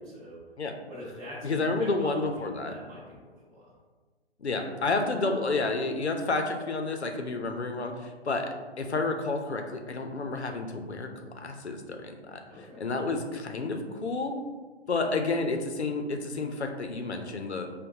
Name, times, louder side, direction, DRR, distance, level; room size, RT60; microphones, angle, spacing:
voice 1, 0.1-0.4 0.9-3.7 12.4-12.8 14.8-15.1, left 1 dB, 15° right, -9 dB, 1.1 m, -45 dB
voice 2, 1.4-2.7 4.4-8.5 8.8-11.1 11.3-12.4 12.8-14.4 14.9-17.7, left 3 dB, 90° left, 4 dB, 0.6 m, -30 dB
5.2 x 2.2 x 2.7 m, 1.4 s
figure-of-eight pair, 130°, 32 cm